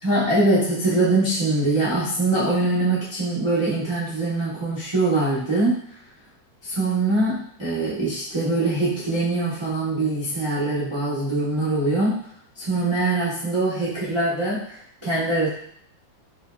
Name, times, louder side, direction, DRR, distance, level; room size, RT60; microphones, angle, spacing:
voice 1, 0.0-5.8 6.6-12.2 12.6-14.8 15.0-15.5, right 2 dB, 40° right, -10 dB, 0.3 m, -23 dB
5.1 x 2.2 x 2.3 m, 0.63 s
omnidirectional pair, 2.2 m